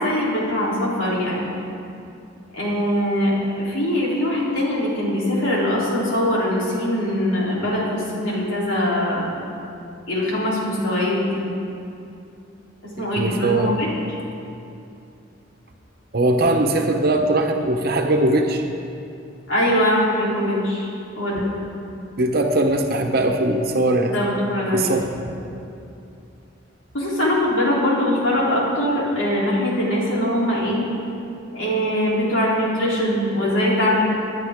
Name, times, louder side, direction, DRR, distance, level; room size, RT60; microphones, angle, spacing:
voice 1, 0.0-1.5 2.5-9.3 10.1-11.4 12.8-13.9 19.5-20.9 21.2-21.5 24.1-25.0 26.9-30.8 31.5-34.0, left 1 dB, 75° left, -6 dB, 3.5 m, -22 dB
voice 2, 13.0-13.7 16.1-18.7 22.2-24.1 24.7-25.1, right 1 dB, 50° right, 3 dB, 1.1 m, -20 dB
20.0 x 10.5 x 3.7 m, 2.7 s
head